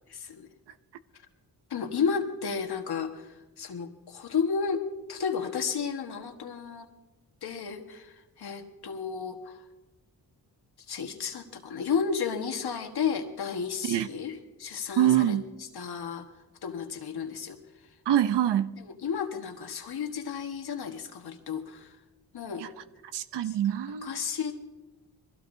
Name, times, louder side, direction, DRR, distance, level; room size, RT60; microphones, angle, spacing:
voice 1, 0.1-0.5 1.7-4.8 5.1-6.9 7.4-9.6 10.9-15.4 15.7-16.2 16.6-17.6 18.8-21.9 22.3-22.7 23.4-23.6 24.0-24.7, left 6 dB, 70° left, 1.6 m, -32 dB
voice 2, 15.0-15.4 18.1-18.8 23.1-24.2, right 11 dB, 85° right, 0.7 m, -25 dB
22.0 x 16.0 x 2.7 m
cardioid pair, 60°, 40 cm